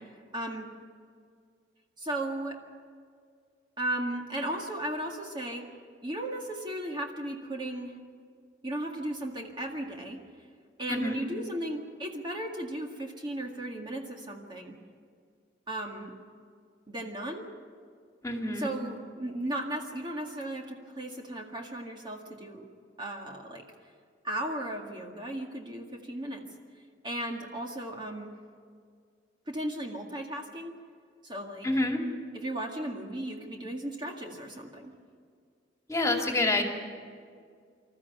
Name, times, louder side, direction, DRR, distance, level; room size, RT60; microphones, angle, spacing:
voice 1, 0.3-0.7 2.0-2.6 3.8-5.6 6.0-7.9 8.6-10.2 10.8-14.8 15.7-16.1 16.9-17.5 18.6-22.7 23.0-23.6 24.2-26.5 27.0-28.4 29.5-30.8 31.2-31.7 32.3-34.9, right 1 dB, 25° right, 1 dB, 2.0 m, -35 dB
voice 2, 10.9-11.2 18.2-18.7 31.6-32.0 35.9-36.6, left 2 dB, 15° left, 2 dB, 2.5 m, -27 dB
26.5 x 14.0 x 9.4 m, 2.1 s
head